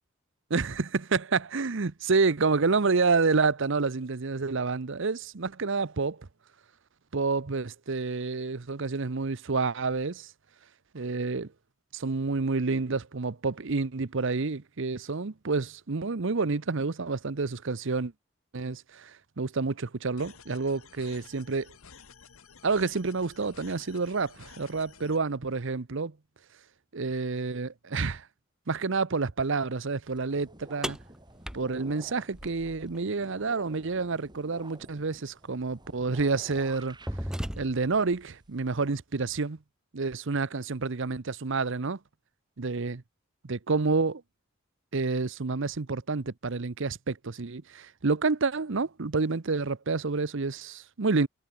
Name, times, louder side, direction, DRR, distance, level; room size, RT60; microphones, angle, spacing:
voice 1, 0.5-6.3 7.1-10.3 10.9-11.5 11.9-18.1 18.5-21.7 22.6-26.2 26.9-28.3 28.7-31.0 31.5-37.0 37.6-39.6 39.9-42.0 42.6-43.0 43.4-44.2 44.9-51.3, right 4 dB, 60° right, 0.8 m, -29 dB
sound 1, 20.2-25.2, left 6 dB, 80° left, 1.6 m, -52 dB
sound 2, 30.0-38.9, right 1 dB, 20° right, 6.0 m, -52 dB
sound 3, 30.8-33.0 34.9-35.0 35.8-36.0 36.5-38.0, equal, 5° right, 0.8 m, -37 dB
head